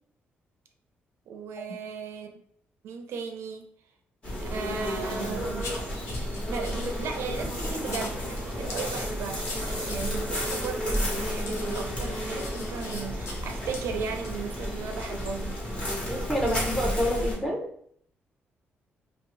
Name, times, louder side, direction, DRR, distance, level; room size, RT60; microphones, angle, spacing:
voice 1, 1.3-2.3 2.8-3.7 4.4-5.7 6.5-15.6, right 6 dB, 80° right, 5 dB, 0.4 m, -36 dB
sound 1, 4.2-17.3, equal, 25° left, 1.1 m, -32 dB
sound 2, 5.6-6.9 7.4-8.2 8.7-13.4 13.7-13.9 14.2-14.4, left 3 dB, 75° left, 0.7 m, -41 dB
voice 2, 16.1-17.7, equal, 10° left, -2 dB, 0.7 m, -28 dB
2.9 x 2.6 x 3.1 m, 0.65 s
cardioid pair, 160°, 4 cm